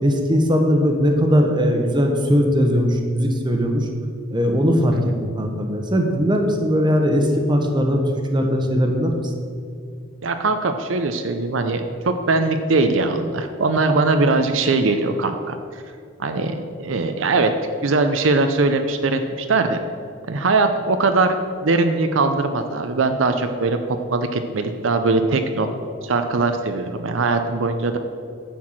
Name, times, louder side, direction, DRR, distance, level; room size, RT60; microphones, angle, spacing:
voice 1, 0.0-3.9 4.3-8.0 8.3-9.2, equal, 25° right, 3 dB, 1.1 m, -19 dB
voice 2, 10.2-15.8 16.2-17.5 17.8-19.8 20.3-21.4 21.6-25.7 26.0-28.0, right 3 dB, 70° right, 7 dB, 0.6 m, -21 dB
10.0 x 4.6 x 7.4 m, 2.3 s
head